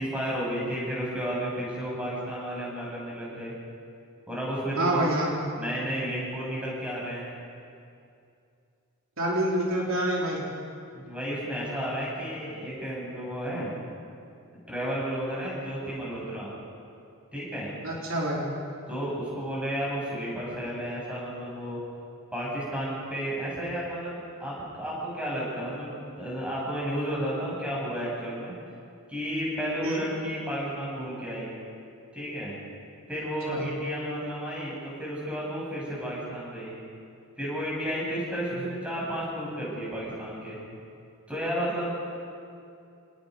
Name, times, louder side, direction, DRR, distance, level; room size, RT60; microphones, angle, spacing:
voice 1, 0.0-3.5 4.3-5.2 5.5-7.3 10.9-13.7 14.7-16.5 17.3-17.7 18.9-21.8 22.3-28.6 29.1-31.5 32.1-32.6 33.1-36.7 37.4-40.6 41.3-41.9, equal, 5° right, -5 dB, 7.1 m, -32 dB
voice 2, 4.8-5.4 9.2-10.5 17.8-18.5 29.8-30.0 33.5-33.7, right 1 dB, 65° right, -3 dB, 3.7 m, -27 dB
27.5 x 19.5 x 5.3 m, 2.5 s
head